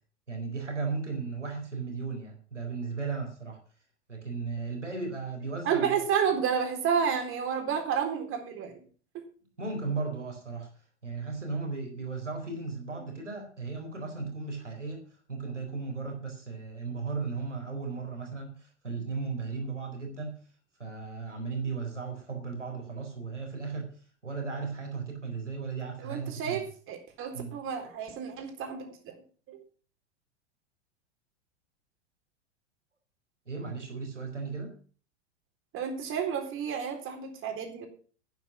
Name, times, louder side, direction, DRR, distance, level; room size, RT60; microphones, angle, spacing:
voice 1, 0.3-3.6 4.1-6.0 9.6-10.7 11.0-20.4 20.8-26.6 27.3-27.5 33.5-34.8, right 4 dB, 90° right, 3 dB, 4.3 m, -36 dB
voice 2, 5.6-8.9 9.1-9.3 12.9-13.2 26.0-29.1 29.5-29.6 35.7-37.9, right 7 dB, 35° right, 4 dB, 3.9 m, -31 dB
12.0 x 9.6 x 5.7 m, 0.41 s
figure-of-eight pair, 95°, 35 cm